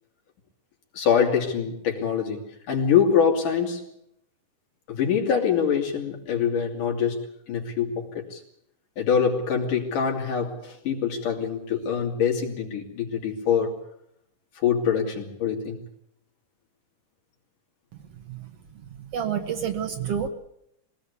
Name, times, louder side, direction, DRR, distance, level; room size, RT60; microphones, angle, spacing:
voice 1, 0.9-3.8 4.9-8.4 9.0-13.7 14.6-15.8, left 7 dB, 80° left, 1 dB, 4.5 m, -24 dB
voice 2, 19.1-20.3, right 8 dB, 60° right, 6 dB, 1.9 m, -28 dB
22.0 x 18.5 x 8.3 m, 0.78 s
omnidirectional pair, 3.7 m